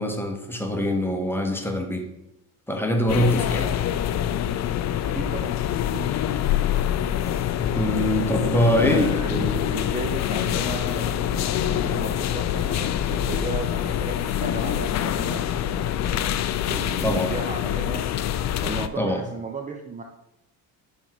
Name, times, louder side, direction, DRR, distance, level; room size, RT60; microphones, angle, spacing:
voice 1, 0.0-2.1 2.7-3.7 7.7-9.1 17.0-17.3 19.0-19.2, equal, 5° left, 3 dB, 1.0 m, -23 dB
sound 1, 3.1-18.9, left 11 dB, 45° left, 0.4 m, -25 dB
voice 2, 5.0-5.6 5.9-6.1 8.3-16.3 16.6-18.1 18.6-20.0, right 4 dB, 20° right, 3 dB, 0.6 m, -35 dB
6.0 x 4.6 x 4.0 m, 0.87 s
cardioid pair, 95°, 38 cm